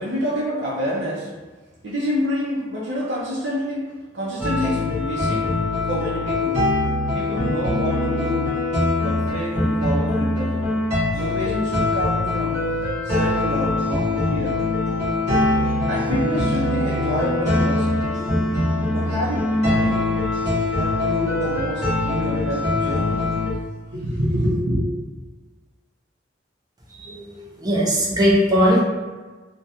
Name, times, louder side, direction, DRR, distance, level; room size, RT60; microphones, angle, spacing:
voice 1, 0.0-1.4 1.8-6.7 7.1-8.6 9.0-10.7 11.1-12.7 13.0-14.7 15.6-18.1 18.9-20.1 20.7-23.3 23.9-24.8, equal, 75° right, -6 dB, 0.5 m, -27 dB
sound 1, 4.4-23.5, left 2 dB, 40° right, 0.9 m, -22 dB
voice 2, 27.0-28.8, equal, 20° right, -4 dB, 0.5 m, -19 dB
2.4 x 2.2 x 2.7 m, 1.3 s
head